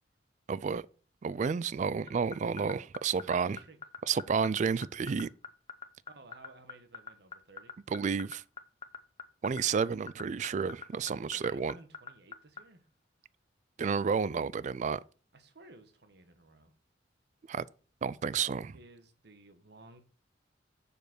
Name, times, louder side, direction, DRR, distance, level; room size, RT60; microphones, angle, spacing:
voice 1, 0.5-0.8 1.2-3.6 4.1-5.3 7.9-8.4 9.4-11.7 13.8-15.0 17.5-17.6 18.0-18.8, right 6 dB, 40° right, 0.3 m, -31 dB
voice 2, 1.3-2.2 3.2-3.8 6.1-7.7 11.2-12.9 15.3-16.7 18.7-20.0, right 2 dB, 60° right, 1.3 m, -56 dB
sound 1, 2.1-12.6, left 6 dB, 30° left, 0.7 m, -42 dB
6.9 x 5.1 x 6.2 m
head